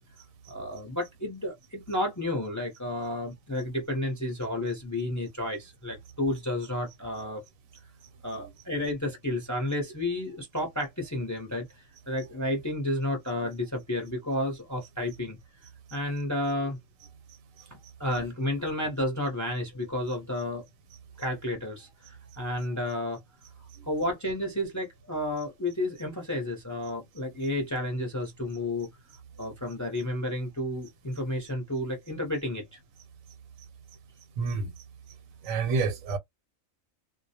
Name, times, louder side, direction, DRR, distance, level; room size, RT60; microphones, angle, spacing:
voice 1, 0.5-7.4 8.2-15.4 15.9-16.8 18.0-20.6 21.2-23.2 23.9-28.9 29.4-32.8, left 1 dB, 20° left, 0.5 m, -31 dB
voice 2, 34.4-34.8 35.4-36.2, right 4 dB, 80° right, 1.0 m, -31 dB
2.2 x 2.0 x 2.7 m
omnidirectional pair, 1.4 m